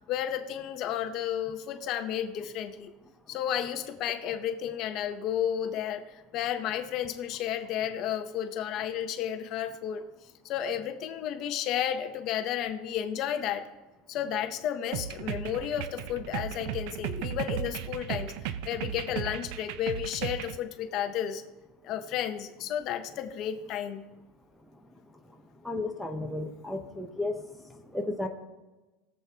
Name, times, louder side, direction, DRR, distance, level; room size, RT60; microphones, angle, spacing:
voice 1, 0.1-2.9 3.3-10.0 10.4-13.7 14.1-21.4 21.8-24.1, left 10 dB, 40° left, 8 dB, 0.7 m, -32 dB
sound 1, 14.9-20.6, right 10 dB, 60° right, 0.5 m, -36 dB
voice 2, 25.7-27.3 27.9-28.3, left 2 dB, ahead, 1 dB, 0.7 m, -33 dB
20.5 x 7.4 x 2.9 m, 1.1 s
cardioid pair, 170°, 0 cm